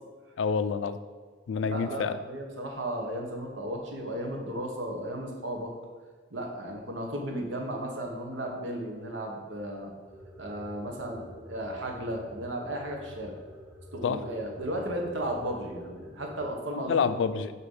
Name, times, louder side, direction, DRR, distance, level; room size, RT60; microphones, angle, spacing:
voice 1, 0.4-1.0 1.5-2.2 14.0-14.2 16.7-17.5, left 5 dB, 80° left, 12 dB, 0.4 m, -27 dB
voice 2, 1.7-5.7 6.3-9.9 10.4-13.3 13.9-17.1, right 1 dB, 85° right, 1 dB, 1.1 m, -35 dB
sound 1, 10.1-16.4, equal, 10° right, 0.8 m, -48 dB
6.6 x 2.9 x 5.4 m, 1.5 s
head